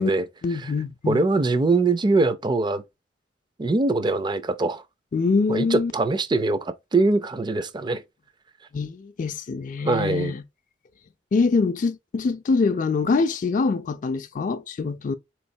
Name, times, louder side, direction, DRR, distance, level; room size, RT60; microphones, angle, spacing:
voice 1, 0.4-1.2 5.1-5.9 8.7-10.4 11.3-15.1, left 4 dB, 45° left, 0.4 m, -24 dB
voice 2, 1.1-2.8 3.6-4.8 5.5-8.0 9.8-10.3, right 3 dB, 25° right, 0.4 m, -22 dB
3.8 x 3.1 x 2.6 m
head